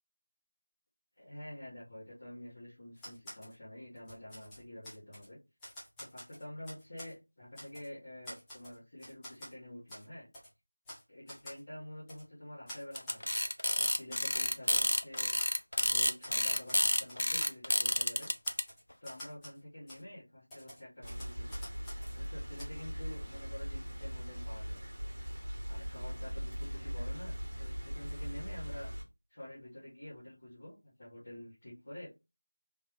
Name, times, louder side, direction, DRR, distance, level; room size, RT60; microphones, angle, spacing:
voice 1, 1.2-5.4 6.1-10.3 11.1-13.4 13.8-18.3 19.0-21.7 22.1-24.8 25.7-28.9 29.3-32.1, left 1 dB, 35° left, -10 dB, 1.7 m, -48 dB
Typewriter, 3.0-3.5 4.0-5.3 5.6-7.1 7.5-7.9 8.2-9.5 9.9-10.0 10.3-10.5 10.8-11.0 11.3-11.6 12.1-12.2 12.7-14.9 15.1-15.9 16.2-17.9 18.2-19.6 19.9-20.0 20.5-22.2 22.6-22.7, equal, 5° left, 0.6 m, -49 dB
sound 1, 13.0-18.6, left 1 dB, 65° left, 0.5 m, -29 dB
Rain, 21.0-29.0, equal, 25° right, 1.4 m, -40 dB
3.4 x 3.1 x 3.2 m, 0.26 s
figure-of-eight pair, 175°, 0 cm